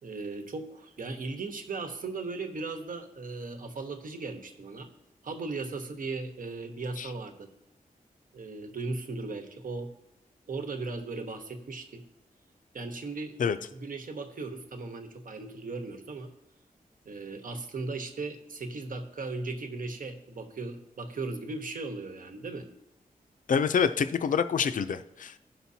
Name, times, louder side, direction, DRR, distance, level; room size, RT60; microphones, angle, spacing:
voice 1, 0.0-4.9 5.2-7.5 8.3-9.9 10.5-12.0 12.7-13.3 13.7-16.3 17.0-22.7, right 3 dB, 65° right, 5 dB, 1.2 m, -37 dB
voice 2, 23.5-25.4, left 6 dB, 60° left, 11 dB, 0.4 m, -26 dB
16.5 x 5.9 x 2.8 m, 0.84 s
wide cardioid pair, 110°, 15 cm